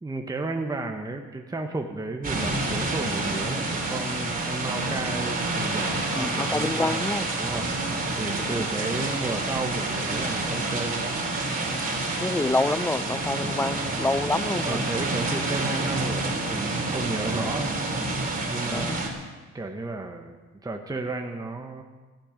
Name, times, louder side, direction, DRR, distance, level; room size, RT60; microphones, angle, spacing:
voice 1, 0.0-7.0 7.4-7.8 8.2-11.2 13.4-14.0 14.6-17.7 18.5-18.9 19.5-20.4 20.6-21.8, right 2 dB, 10° right, 3 dB, 1.2 m, -33 dB
sound 1, 2.2-19.1, right 2 dB, 30° right, 3.2 m, -28 dB
voice 2, 6.2-7.3 8.5-8.7 12.2-14.8 17.4-17.5 18.7-19.0, left 2 dB, 10° left, 17 dB, 0.4 m, -27 dB
14.5 x 14.5 x 5.2 m, 1.3 s
cardioid pair, 90°, 30 cm